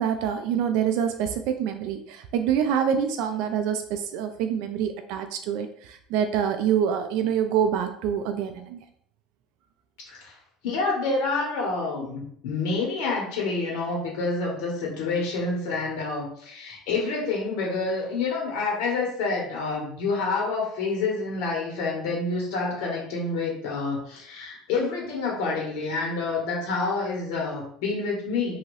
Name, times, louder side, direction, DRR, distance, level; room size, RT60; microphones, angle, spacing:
voice 1, 0.0-8.8, right 8 dB, 65° right, 7 dB, 0.3 m, -26 dB
voice 2, 10.6-28.6, left 3 dB, 75° left, -2 dB, 1.3 m, -28 dB
2.7 x 2.6 x 3.1 m, 0.65 s
cardioid pair, 165°, 0 cm